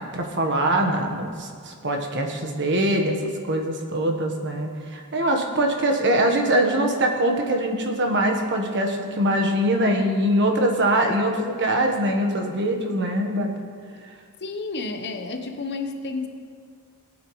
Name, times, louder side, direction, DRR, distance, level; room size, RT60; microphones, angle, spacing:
voice 1, 0.0-3.2 3.4-13.5, right 1 dB, 55° right, 3 dB, 1.3 m, -23 dB
voice 2, 14.4-16.3, left 3 dB, 50° left, 5 dB, 0.9 m, -31 dB
19.0 x 8.8 x 3.2 m, 2.1 s
head